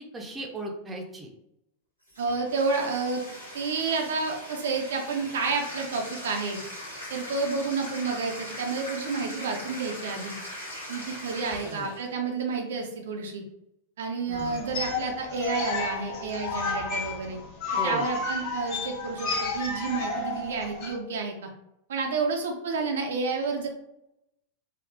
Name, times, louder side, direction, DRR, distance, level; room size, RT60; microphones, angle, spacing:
voice 1, 0.1-1.3 11.6-11.9 14.3-14.6 17.7-18.1, right 1 dB, 15° right, 0 dB, 0.6 m, -36 dB
Bathtub (filling or washing), 2.1-12.1, left 1 dB, 85° left, 1.2 m, -40 dB
voice 2, 2.2-3.2 3.5-6.6 7.1-10.4 10.9-13.4 14.0-17.4 17.8-21.5 21.9-23.7, right 4 dB, 60° right, 2 dB, 0.5 m, -30 dB
sound 1, 14.3-20.9, left 3 dB, 40° left, 0.6 m, -32 dB
3.4 x 2.4 x 2.5 m, 0.83 s
figure-of-eight pair, 90°, 0 cm